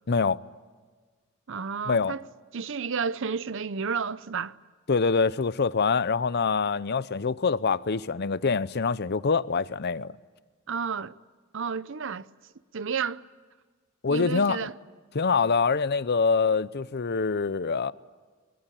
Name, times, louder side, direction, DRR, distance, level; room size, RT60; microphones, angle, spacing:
voice 1, 0.1-0.4 1.9-2.1 4.9-10.1 14.0-14.7 15.1-17.9, left 5 dB, 55° left, 0.7 m, -25 dB
voice 2, 1.5-2.2 2.5-4.6 10.7-11.1 11.5-12.3 12.7-13.2 14.1-14.7, right 5 dB, 65° right, 0.7 m, -31 dB
24.5 x 21.5 x 9.3 m
head